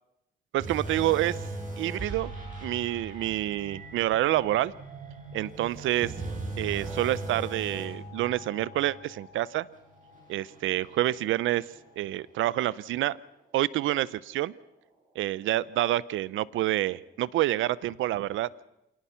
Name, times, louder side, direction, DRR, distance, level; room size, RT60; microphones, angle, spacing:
voice 1, 0.5-1.4 1.8-2.3 2.6-4.7 5.3-6.1 6.6-9.7 10.3-11.7 12.0-13.2 13.5-14.5 15.2-18.5, right 14 dB, 80° right, 20 dB, 0.7 m, -28 dB
sound 1, 0.6-12.1 12.4-12.6 13.2-13.3, right 2 dB, 40° right, 7.7 m, -40 dB
27.0 x 18.5 x 5.7 m, 0.87 s
cardioid pair, 90°, 20 cm